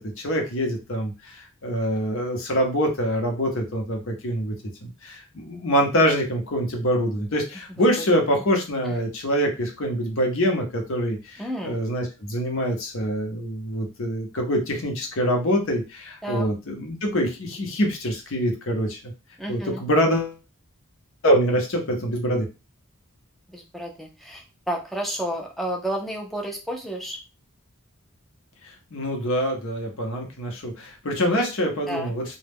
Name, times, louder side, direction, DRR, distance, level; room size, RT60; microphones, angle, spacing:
voice 1, 0.2-4.5 4.8-19.1 19.5-20.4 21.2-22.5 28.6-32.4, equal, 60° left, 3 dB, 0.7 m, -25 dB
voice 2, 11.4-11.8 16.2-16.5 19.4-19.8 23.5-27.2 31.9-32.1, right 1 dB, ahead, 1 dB, 0.5 m, -31 dB
2.3 x 2.1 x 3.4 m, 0.29 s
head